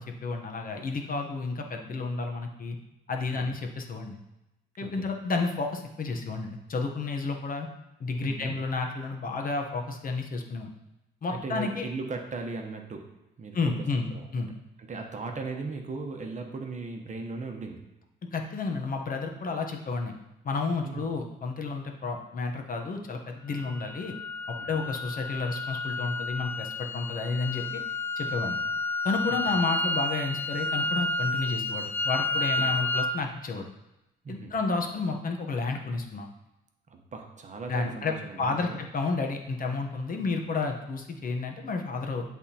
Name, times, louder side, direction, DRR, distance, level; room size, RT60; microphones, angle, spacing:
voice 1, 0.0-2.8 3.1-4.2 4.8-7.7 8.0-10.7 11.2-11.9 13.5-14.5 18.3-20.1 20.4-24.1 24.5-27.6 28.2-28.6 29.0-33.7 34.3-36.3 37.7-42.2, left 4 dB, 45° left, 3 dB, 1.0 m, -31 dB
voice 2, 8.2-8.6 11.3-13.6 14.1-14.3 14.8-17.9 20.8-21.1 24.6-24.8 29.3-29.5 32.7-32.8 34.2-34.5 36.9-38.8, right 4 dB, 40° right, 3 dB, 1.0 m, -38 dB
sound 1, 23.5-33.2, left 2 dB, 10° left, 0.3 m, -31 dB
10.5 x 3.6 x 2.9 m, 0.94 s
cardioid pair, 90°, 20 cm